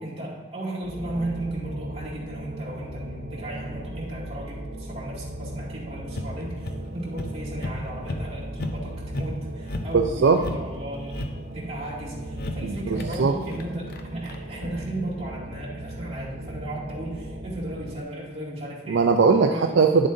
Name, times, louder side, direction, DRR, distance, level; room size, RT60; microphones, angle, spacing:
voice 1, 0.0-11.3 11.5-19.0 19.5-19.7, right 1 dB, 35° right, -6 dB, 2.3 m, -35 dB
sound 1, 0.8-18.0, right 1 dB, 50° right, 0.9 m, -37 dB
sound 2, 6.1-6.8 7.2-7.3 7.6-7.8 8.0-8.2 8.6-8.8 9.1-9.4 9.6-9.9 10.2-11.4 12.3-12.6 13.0-13.2 13.4-14.8, left 1 dB, 55° left, 0.7 m, -33 dB
voice 2, 9.9-10.4 12.6-13.3 18.9-20.1, right 4 dB, 70° right, 3 dB, 0.4 m, -20 dB
10.0 x 7.3 x 2.6 m, 1.5 s
head